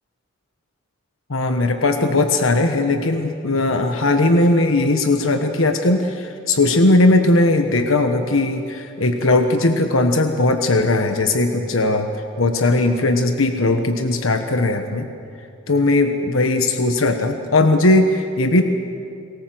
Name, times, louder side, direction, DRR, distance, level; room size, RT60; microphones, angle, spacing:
voice 1, 1.3-12.1 12.4-15.1 15.7-18.6, left 2 dB, 90° left, 6 dB, 1.3 m, -18 dB
30.0 x 20.0 x 7.8 m, 2.7 s
head